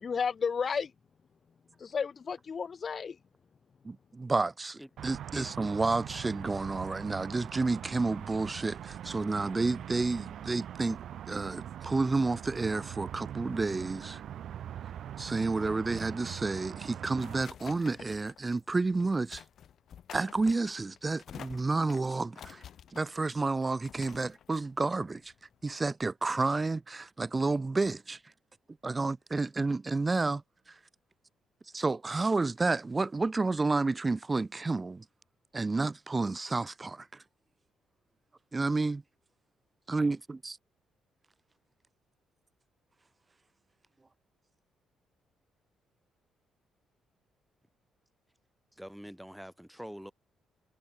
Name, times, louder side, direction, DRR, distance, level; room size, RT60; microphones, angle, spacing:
voice 1, 0.0-0.9 1.8-3.2, left 6 dB, 45° left, 0.7 m, -32 dB
voice 2, 3.8-11.0 11.3-14.2 15.2-19.4 20.1-22.6 22.9-25.3 25.6-28.2 28.8-30.4 31.7-35.0 35.5-37.2 38.5-39.0 39.9-40.6, right 3 dB, 25° right, 0.4 m, -30 dB
sound 1, 5.0-17.4, right 10 dB, 70° right, 2.0 m, -42 dB
sound 2, 16.6-25.9, left 9 dB, 65° left, 3.8 m, -51 dB
voice 3, 48.8-50.1, equal, ahead, 1.1 m, -44 dB
cardioid pair, 90°, 0 cm